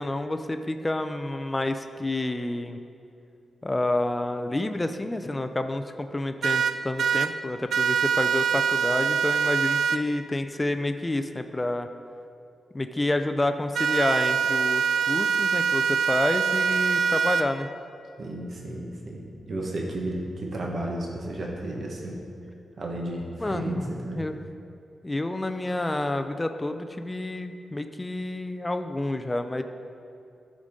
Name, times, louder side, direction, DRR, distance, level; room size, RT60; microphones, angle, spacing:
voice 1, 0.0-2.8 3.6-11.9 12.7-17.7 23.4-24.4 25.0-29.6, left 2 dB, 15° left, 8 dB, 0.4 m, -29 dB
sound 1, 6.4-7.3 7.7-10.0 13.7-17.4, right 6 dB, 90° right, 0.3 m, -24 dB
voice 2, 18.2-22.2 22.8-24.2, right 1 dB, 50° right, -1 dB, 1.3 m, -33 dB
13.0 x 5.1 x 3.7 m, 2.6 s
wide cardioid pair, 140°, 0 cm